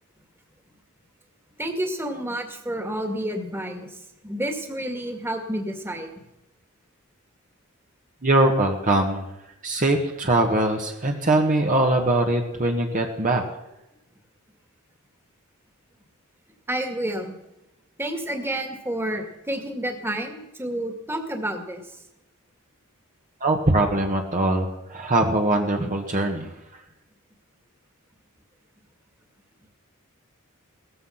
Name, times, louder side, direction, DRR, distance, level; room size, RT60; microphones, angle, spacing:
voice 1, 1.6-3.9 4.2-6.1 16.7-17.4 18.0-21.8, right 1 dB, 10° right, 5 dB, 2.1 m, -29 dB
voice 2, 8.2-9.2 9.6-13.4 23.4-26.5, right 2 dB, 35° right, 2 dB, 1.5 m, -22 dB
17.5 x 14.0 x 5.8 m, 0.89 s
head